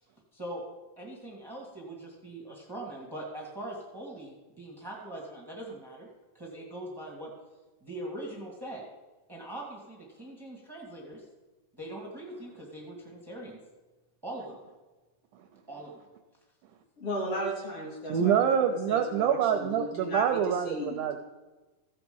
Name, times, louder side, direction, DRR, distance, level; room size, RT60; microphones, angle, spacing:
voice 1, 0.3-0.6 1.0-6.1 6.3-7.3 7.8-8.8 9.3-11.2 11.7-13.6 14.2-14.5 15.7-16.0, right 1 dB, 15° right, -4 dB, 0.7 m, -41 dB
voice 2, 17.0-18.3 18.9-21.0, equal, 45° left, -2 dB, 2.7 m, -35 dB
voice 3, 18.1-21.2, right 8 dB, 80° right, 6 dB, 1.9 m, -26 dB
15.0 x 7.9 x 5.3 m, 1.2 s
omnidirectional pair, 4.2 m